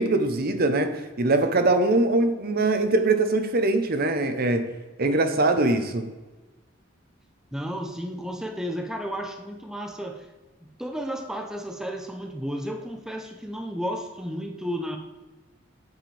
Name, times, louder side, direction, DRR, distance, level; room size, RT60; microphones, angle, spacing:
voice 1, 0.0-6.1, right 2 dB, 50° right, 0.8 m, -22 dB
voice 2, 7.5-10.3 10.6-15.0, equal, 5° right, 0.6 m, -33 dB
9.2 x 7.6 x 3.4 m
head